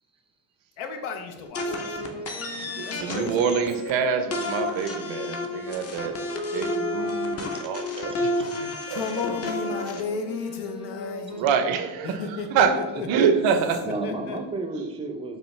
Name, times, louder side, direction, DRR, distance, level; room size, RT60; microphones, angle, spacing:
voice 1, 0.8-3.4 8.4-8.5 8.9-11.5 12.0-13.3 13.8-14.4, left 5 dB, 75° left, 5 dB, 0.7 m, -34 dB
sound 1, 1.5-3.9 4.3-10.0, left 1 dB, 30° left, 0.6 m, -31 dB
sound 2, 1.6-12.0, left 3 dB, 45° left, 1.3 m, -39 dB
voice 2, 2.6-6.2 6.5-8.3 8.5-9.0 11.3-12.8 13.1-13.9, right 6 dB, 65° right, 8 dB, 0.6 m, -26 dB
voice 3, 12.6-13.3 13.8-15.4, right 2 dB, 10° right, 4 dB, 0.4 m, -33 dB
4.8 x 2.3 x 3.1 m, 1.1 s
supercardioid pair, 90°, 49 cm